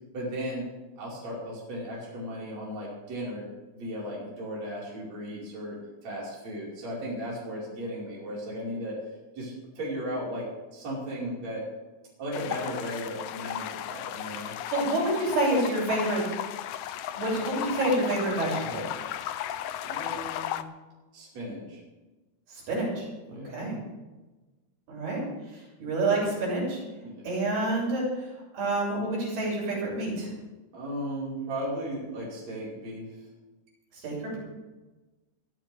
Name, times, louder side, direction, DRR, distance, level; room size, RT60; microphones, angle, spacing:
voice 1, 0.1-0.7 1.0-3.5 3.7-9.0 9.4-10.5 10.7-11.6 12.2-14.6 19.8-20.6 21.1-21.8 23.3-23.6 27.0-27.2 30.7-33.1, equal, 45° right, -6 dB, 6.4 m, -36 dB
sound 1, 12.3-20.6, left 11 dB, 75° left, 2.1 m, -35 dB
voice 2, 14.4-16.2 17.1-18.9 22.5-23.8 24.9-25.2 25.5-26.8 27.2-28.1 28.5-30.3 34.0-34.4, right 2 dB, 80° right, -4 dB, 8.9 m, -28 dB
24.5 x 14.0 x 3.7 m, 1.2 s
omnidirectional pair, 4.5 m